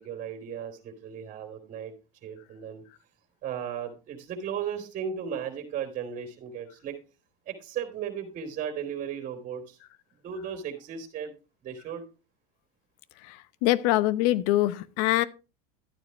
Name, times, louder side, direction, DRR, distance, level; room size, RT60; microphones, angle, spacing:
voice 1, 0.0-1.9 2.2-2.8 3.4-7.0 7.5-9.8 10.2-11.3 11.6-12.0, right 8 dB, 40° right, 3.3 m, -36 dB
voice 2, 13.2-15.2, left 16 dB, 65° left, 0.9 m, -24 dB
12.5 x 9.2 x 3.1 m
supercardioid pair, 120°, 20 cm